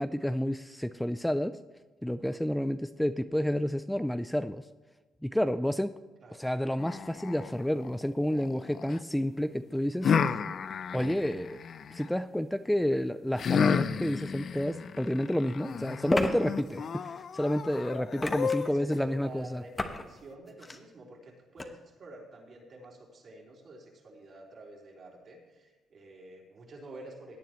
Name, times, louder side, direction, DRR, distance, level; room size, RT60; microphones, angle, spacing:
voice 1, 0.0-1.6 2.0-4.6 5.2-5.9 6.4-10.1 10.9-11.6 11.9-19.6, equal, 5° left, 11 dB, 0.4 m, -30 dB
sound 1, 6.8-9.0 10.0-12.1 13.4-19.0, left 6 dB, 55° left, 0.5 m, -32 dB
sound 2, 14.6-14.7 16.1-16.3 18.2-18.7 19.8-20.0 20.5-20.8 21.6-21.7, left 2 dB, 25° left, 1.1 m, -31 dB
voice 2, 18.6-27.4, right 2 dB, 55° right, -2 dB, 3.9 m, -49 dB
17.5 x 9.2 x 3.1 m, 1.3 s
cardioid pair, 90°, 0 cm